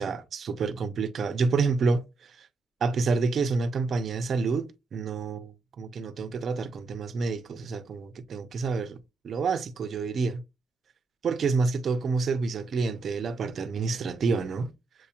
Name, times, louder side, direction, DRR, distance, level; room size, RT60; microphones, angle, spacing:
voice 1, 0.0-2.5 2.8-10.4 11.2-14.7, right 4 dB, 55° right, 0.7 m, -28 dB
7.6 x 2.8 x 2.3 m
cardioid pair, 90°, 0 cm